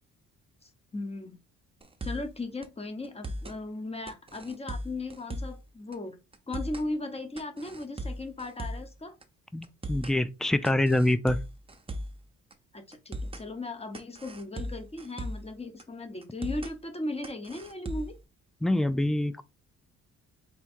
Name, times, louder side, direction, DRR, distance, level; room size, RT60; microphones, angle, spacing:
voice 1, 0.6-1.4 2.0-6.2 6.5-9.1 12.7-18.2, left 2 dB, 20° left, 1.1 m, -37 dB
sound 1, 1.8-2.3 2.6-2.7 3.0-3.6 4.1-5.6 5.9-6.0 6.3-6.9 7.4-8.9 9.2-9.3 9.6-10.2 10.6-12.2 12.5-12.6 12.9-13.5 13.9-15.5 15.8-15.9 16.2-16.7 17.2-18.2, equal, 20° right, 0.8 m, -38 dB
voice 2, 9.5-11.4 18.6-19.4, left 1 dB, ahead, 0.4 m, -25 dB
4.5 x 2.3 x 4.4 m
cardioid pair, 90°, 30 cm